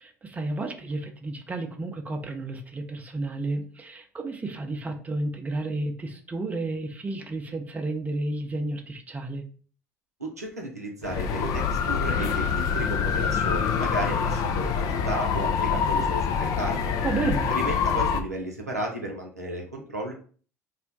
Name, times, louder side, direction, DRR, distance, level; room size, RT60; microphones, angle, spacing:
voice 1, 0.0-9.4 17.0-17.5, right 2 dB, 20° right, 4 dB, 0.6 m, -31 dB
voice 2, 10.2-16.9 17.5-20.1, right 1 dB, 85° right, 0 dB, 0.5 m, -33 dB
sound 1, 11.0-18.2, left 6 dB, 45° left, 0.4 m, -25 dB
2.4 x 2.1 x 3.8 m, 0.42 s
figure-of-eight pair, 60°, 8 cm